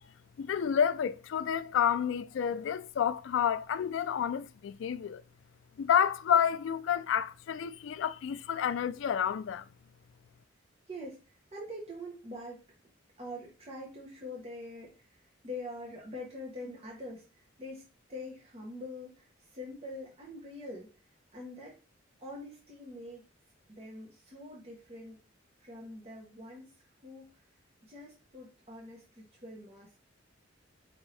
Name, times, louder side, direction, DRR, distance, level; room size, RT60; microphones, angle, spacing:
voice 1, 0.4-5.2 5.8-9.6, left 8 dB, 70° left, 0.3 m, -29 dB
voice 2, 10.9-11.2 11.5-12.6 13.2-15.1 15.4-17.8 18.1-20.9 21.3-21.8 22.2-23.2 23.7-25.2 25.6-26.7 27.0-27.3 27.8-30.0, left 1 dB, 30° right, 1.0 m, -44 dB
5.1 x 2.7 x 3.3 m
head